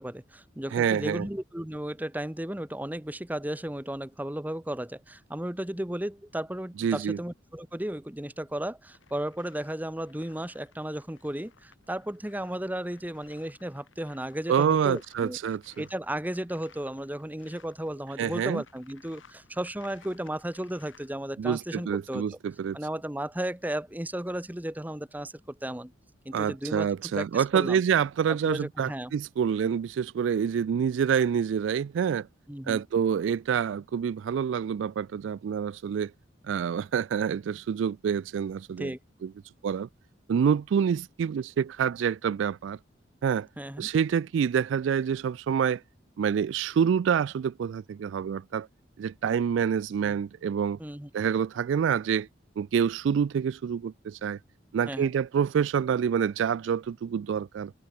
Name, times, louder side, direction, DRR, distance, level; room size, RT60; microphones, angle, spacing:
voice 1, 0.0-15.4 15.8-22.2 22.7-25.9 26.2-27.8 28.3-29.1 32.5-32.8 38.8-39.0 43.6-43.9 50.8-51.1 54.9-55.1, right 1 dB, 10° right, 0.9 m, -34 dB
voice 2, 0.7-1.3 6.8-7.2 14.5-15.7 18.2-18.6 21.4-22.8 26.3-32.3 32.7-36.1 36.5-38.9 39.2-39.3 39.6-39.9 40.3-42.8 43.2-43.5 43.8-45.8 46.2-48.7 49.0-50.8 51.1-52.3 52.6-54.4 54.7-57.7, right 7 dB, 75° right, 0.3 m, -27 dB
sound 1, 8.9-21.1, left 5 dB, 85° left, 6.0 m, -59 dB
head